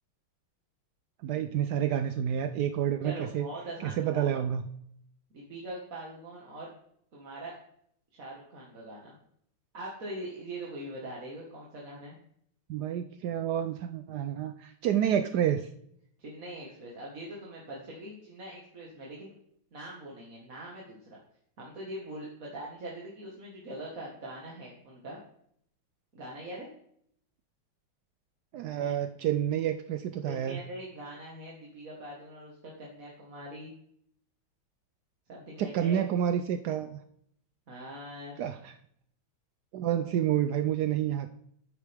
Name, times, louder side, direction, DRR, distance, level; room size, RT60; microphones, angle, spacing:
voice 1, 1.2-3.5 3.8-4.7 12.7-15.7 28.5-30.6 35.6-37.0 38.4-38.8 39.7-41.3, right 10 dB, 90° right, 9 dB, 0.8 m, -29 dB
voice 2, 3.0-4.4 5.3-6.7 7.1-7.5 8.1-9.2 9.7-12.2 16.2-19.3 19.7-21.0 21.6-25.2 26.1-26.7 28.5-29.0 30.2-33.7 35.3-36.0 37.7-38.4, right 1 dB, 40° right, -4 dB, 1.9 m, -42 dB
10.0 x 8.2 x 3.5 m, 0.68 s
omnidirectional pair, 2.3 m